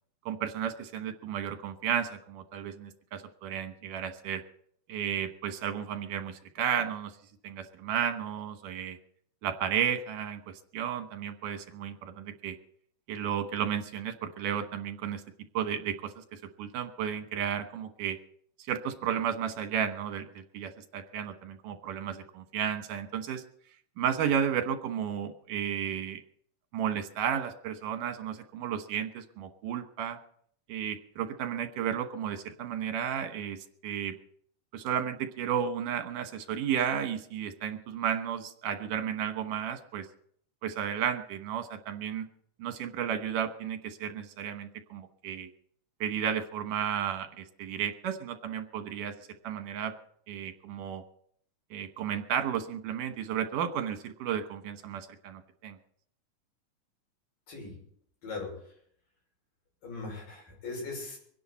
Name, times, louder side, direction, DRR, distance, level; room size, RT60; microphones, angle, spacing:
voice 1, 0.3-4.4 4.9-7.1 7.4-9.0 9.4-12.6 13.1-15.2 15.5-18.2 18.7-23.4 24.0-26.2 26.7-30.2 30.7-34.2 34.7-40.1 40.6-42.3 42.6-45.5 46.0-49.1 49.4-49.9 50.3-51.0 51.7-55.8, right 9 dB, 80° right, 7 dB, 2.8 m, -33 dB
voice 2, 57.5-57.8 58.2-58.7 59.8-61.2, left 3 dB, 80° left, -1 dB, 7.5 m, -39 dB
24.5 x 10.5 x 4.2 m, 0.63 s
omnidirectional pair, 3.7 m